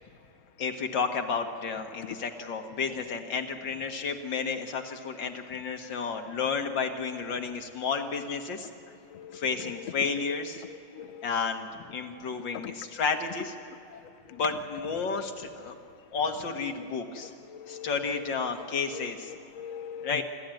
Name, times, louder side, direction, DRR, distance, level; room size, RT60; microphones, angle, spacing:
voice 1, 0.6-8.7 9.3-10.6 11.2-13.5 14.3-15.7 16.1-17.3 17.7-19.3 20.0-20.2, left 5 dB, 85° left, 4 dB, 2.3 m, -31 dB
voice 2, 9.1-9.7 10.0-10.1 10.6-11.3 12.6-12.7 13.9-14.0 17.5-18.2 18.9-20.2, left 8 dB, 60° left, 11 dB, 0.9 m, -42 dB
26.0 x 13.0 x 9.1 m, 2.7 s
omnidirectional pair, 2.0 m